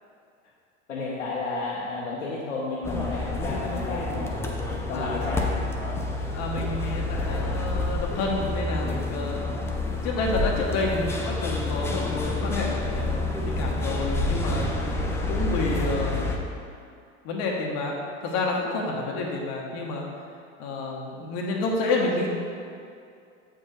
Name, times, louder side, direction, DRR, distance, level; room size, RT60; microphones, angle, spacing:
voice 1, 0.9-4.4 4.9-5.5, left 3 dB, 85° left, -6 dB, 1.0 m, -32 dB
sound 1, 2.8-16.4, left 2 dB, 5° left, 0.4 m, -28 dB
voice 2, 4.9-5.4 6.3-9.5 10.0-14.7 15.3-16.5 17.2-18.0 18.2-20.0 20.6-22.3, left 2 dB, 45° left, -1 dB, 1.0 m, -29 dB
7.6 x 4.5 x 3.1 m, 2.4 s
hypercardioid pair, 85°, 37 cm